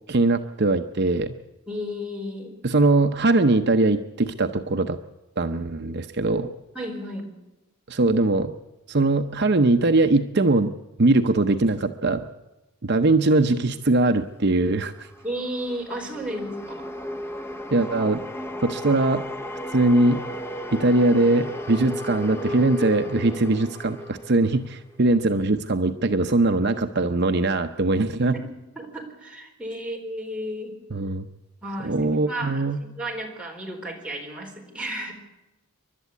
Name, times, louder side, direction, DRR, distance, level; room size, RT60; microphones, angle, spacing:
voice 1, 0.1-1.3 2.6-5.0 5.4-6.5 7.9-8.6 8.9-10.7 11.0-12.2 12.8-15.1 17.7-18.2 18.6-19.2 19.7-20.2 20.7-28.4 30.9-31.3 31.8-32.8, right 2 dB, 50° right, 6 dB, 0.7 m, -21 dB
voice 2, 1.7-2.6 6.7-7.3 15.2-16.9 28.3-28.4 28.8-30.8 31.6-35.1, equal, 5° right, -2 dB, 4.2 m, -33 dB
sound 1, 14.7-25.0, equal, 10° left, 0.7 m, -34 dB
29.0 x 12.0 x 8.4 m, 1.0 s
head